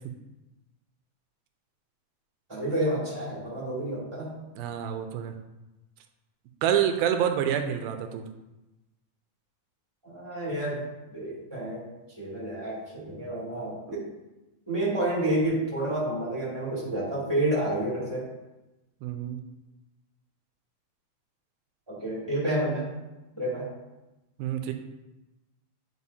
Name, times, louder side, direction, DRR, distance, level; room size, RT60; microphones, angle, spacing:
voice 1, 2.5-4.4 10.0-10.8 11.1-11.8 12.1-14.1 14.7-18.3 21.9-22.9 23.3-23.7, right 1 dB, 10° right, -8 dB, 1.5 m, -29 dB
voice 2, 4.5-5.3 6.6-8.3 13.9-14.0 19.0-19.4 24.4-24.7, right 9 dB, 80° right, 6 dB, 2.3 m, -27 dB
9.6 x 4.7 x 2.8 m, 1.0 s
omnidirectional pair, 4.4 m